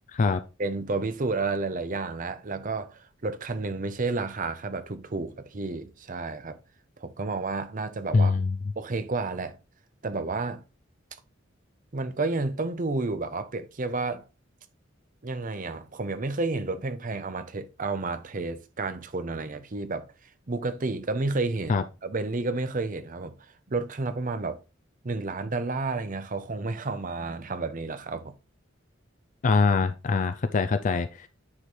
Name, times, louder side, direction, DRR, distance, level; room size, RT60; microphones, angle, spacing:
voice 1, 0.6-6.6 7.0-8.4 8.8-9.6 10.0-10.6 11.9-14.2 15.2-20.1 20.5-23.3 23.7-24.6 25.0-28.3, right 3 dB, 45° right, 0.7 m, -31 dB
voice 2, 8.1-8.6 21.7-21.8 29.4-31.3, left 4 dB, 40° left, 0.4 m, -23 dB
9.6 x 3.2 x 4.2 m
head